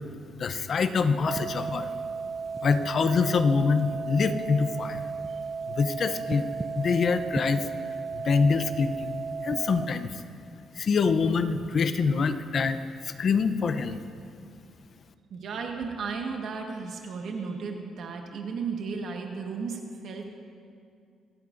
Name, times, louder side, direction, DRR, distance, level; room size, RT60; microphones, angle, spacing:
voice 1, 0.4-1.9 2.6-5.0 5.7-6.5 6.7-7.7 8.1-10.1 10.8-12.8 13.0-14.0, left 5 dB, 50° left, 11 dB, 0.7 m, -25 dB
sound 1, 1.3-9.9, right 5 dB, 25° right, 0.4 m, -34 dB
voice 2, 15.3-20.3, right 5 dB, 65° right, 2 dB, 1.5 m, -34 dB
26.0 x 8.8 x 2.6 m, 2.3 s
cardioid pair, 90°, 0 cm